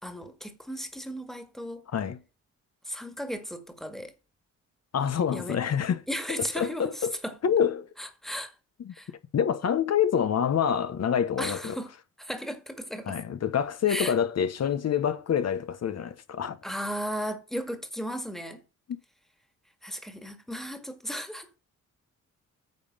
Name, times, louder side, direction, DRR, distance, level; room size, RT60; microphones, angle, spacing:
voice 1, 0.0-1.8 2.8-4.1 5.3-5.6 6.1-7.4 8.0-8.5 8.9-9.1 11.4-11.9 12.2-13.2 13.9-14.1 16.6-18.6 19.8-21.6, equal, ahead, 1.8 m, -35 dB
voice 2, 4.9-6.0 6.6-7.1 7.4-7.9 8.8-8.9 9.3-11.8 13.1-16.6, left 8 dB, 55° left, 1.1 m, -26 dB
9.4 x 5.5 x 5.3 m
cardioid pair, 100°, 31 cm